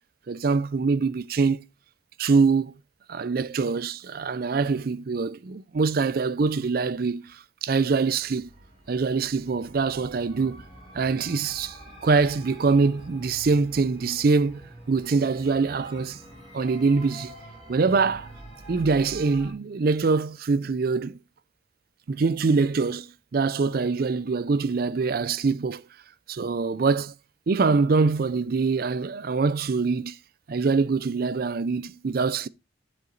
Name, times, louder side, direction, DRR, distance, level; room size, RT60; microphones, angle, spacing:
voice 1, 0.3-1.6 2.2-2.7 3.1-8.5 8.9-10.6 10.9-11.8 12.0-14.6 14.9-16.2 16.5-17.3 17.7-18.3 18.7-21.2 22.1-25.8 26.3-27.1 27.5-30.2 30.5-32.5, right 4 dB, 50° right, 0.4 m, -24 dB
sound 1, 8.1-19.5, right 1 dB, 25° right, 6.4 m, -46 dB
12.0 x 7.9 x 2.5 m
head